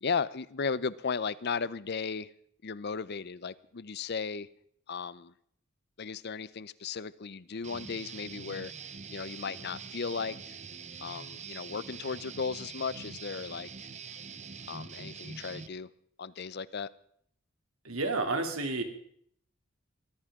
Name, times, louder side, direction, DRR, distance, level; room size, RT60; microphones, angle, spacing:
voice 1, 0.0-2.3 2.6-4.5 4.9-5.3 6.0-8.7 9.1-10.6 11.0-13.9 14.7-15.9 16.2-16.9, left 5 dB, 50° left, 18 dB, 0.6 m, -35 dB
Guitar, 7.6-15.7, right 5 dB, 35° right, 0.8 m, -44 dB
voice 2, 17.8-18.8, right 3 dB, 90° right, 5 dB, 2.8 m, -30 dB
23.5 x 15.0 x 3.7 m, 0.66 s
head